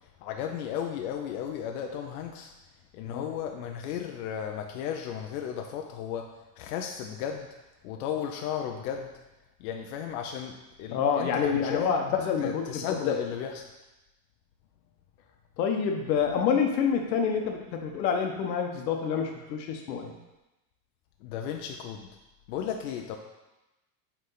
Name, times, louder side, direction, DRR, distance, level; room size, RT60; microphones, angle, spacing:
voice 1, 0.2-2.5 2.9-7.5 7.8-9.1 9.6-12.0 12.4-13.6 21.2-22.1 22.5-23.2, left 8 dB, 60° left, 3 dB, 0.7 m, -34 dB
voice 2, 10.9-13.1 15.6-20.1, left 6 dB, 85° left, 3 dB, 1.2 m, -27 dB
8.2 x 3.6 x 3.9 m, 1.0 s
supercardioid pair, 150°, 50 cm